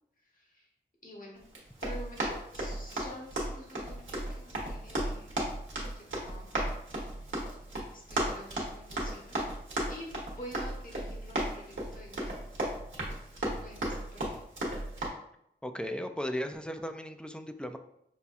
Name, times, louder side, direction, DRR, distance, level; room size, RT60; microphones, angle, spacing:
voice 1, 0.2-0.7 1.0-1.4 1.8-5.3 6.0-6.6 7.9-9.5 9.9-10.1 10.3-12.4 13.6-14.4, equal, 45° left, -2 dB, 1.2 m, -48 dB
Run, 1.4-15.1, right 1 dB, 90° right, 1.0 m, -35 dB
voice 2, 15.6-17.8, equal, 5° left, 7 dB, 0.3 m, -36 dB
5.5 x 2.2 x 2.5 m, 0.76 s
wide cardioid pair, 65°, 20 cm